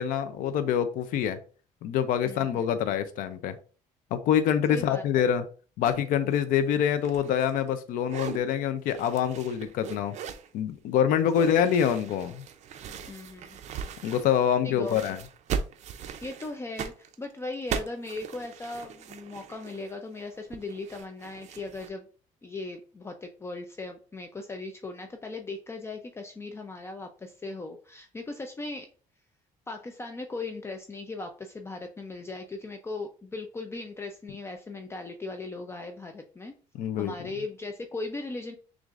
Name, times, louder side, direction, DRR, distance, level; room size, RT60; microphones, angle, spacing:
voice 1, 0.0-1.4 1.8-3.6 4.1-5.4 5.8-10.2 10.5-12.4 14.0-15.2 36.8-37.1, left 9 dB, 75° left, 11 dB, 0.5 m, -25 dB
voice 2, 2.2-2.7 4.7-5.0 11.4-11.7 13.1-13.6 14.6-15.2 16.0-22.1 22.4-28.9 29.7-36.5 37.0-38.6, left 3 dB, 20° left, 4 dB, 0.5 m, -38 dB
sound 1, 5.8-6.0 6.3-7.8 8.0-8.4 8.9-10.5 11.3-14.6 14.8-21.9, right 7 dB, 55° right, 0.5 m, -39 dB
6.3 x 2.5 x 2.4 m, 0.38 s
cardioid pair, 120°, 14 cm